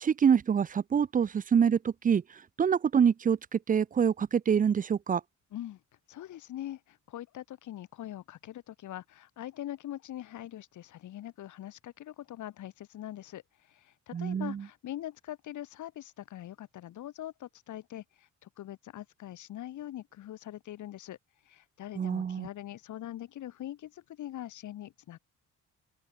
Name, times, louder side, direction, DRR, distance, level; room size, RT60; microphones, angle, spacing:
voice 1, 0.0-2.2 2.6-5.2 14.1-14.6 22.0-22.5, right 7 dB, 30° right, 0.4 m, -26 dB
voice 2, 6.1-21.2 21.4-25.2, left 12 dB, 75° left, 3.0 m, -43 dB
open air
cardioid pair, 90°, 30 cm